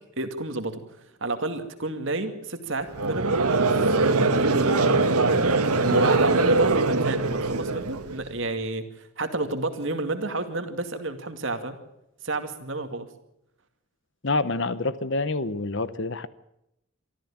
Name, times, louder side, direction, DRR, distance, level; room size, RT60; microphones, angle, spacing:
voice 1, 0.2-0.8 1.2-4.8 5.8-11.8 12.2-13.1, right 2 dB, 55° right, 8 dB, 2.3 m, -30 dB
Conversation / Crowd, 2.9-8.2, right 3 dB, 90° right, 1.6 m, -22 dB
voice 2, 14.2-16.3, left 2 dB, 55° left, 16 dB, 0.9 m, -27 dB
24.5 x 14.0 x 8.7 m, 0.82 s
head